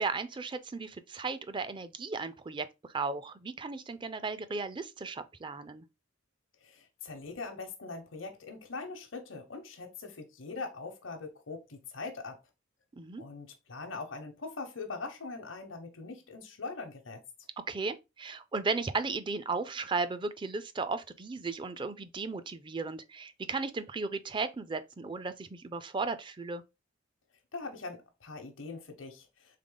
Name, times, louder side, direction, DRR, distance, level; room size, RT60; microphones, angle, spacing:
voice 1, 0.0-5.8 12.9-13.2 17.7-26.6, right 4 dB, 25° right, 0.4 m, -35 dB
voice 2, 6.6-12.4 13.2-17.2 27.5-29.6, left 3 dB, 85° left, 1.0 m, -42 dB
3.7 x 3.5 x 3.8 m
head